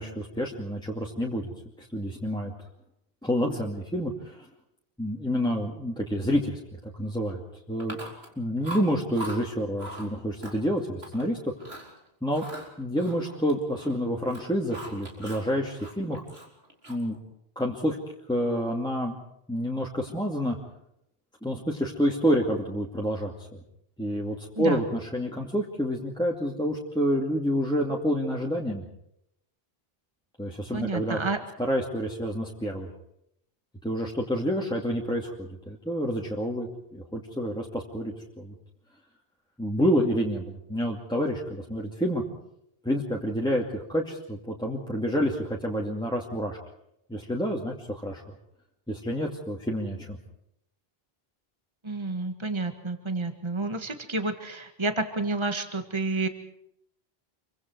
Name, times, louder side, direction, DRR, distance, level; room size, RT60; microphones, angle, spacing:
voice 1, 0.0-1.5 1.8-2.5 3.2-4.5 5.0-7.4 7.7-8.0 8.4-11.5 12.2-12.4 12.8-16.2 16.9-17.2 17.6-18.0 18.3-19.2 19.5-20.6 21.4-23.6 24.0-28.8 30.4-31.2 31.6-32.9 33.8-38.5 39.6-42.2 42.8-46.6 47.1-48.2 48.9-50.2, equal, 5° left, -2 dB, 2.4 m, -28 dB
Chewing mastication, 7.8-8.3 8.6-9.4 9.8-10.1 10.4-11.2 11.6-11.9 12.3-14.0 14.2-15.5 15.8-17.1, equal, 85° right, 4.7 m, -41 dB
voice 2, 30.7-31.4 51.8-56.3, right 3 dB, 25° right, 6 dB, 1.8 m, -30 dB
27.5 x 24.5 x 4.7 m, 0.79 s
omnidirectional pair, 1.0 m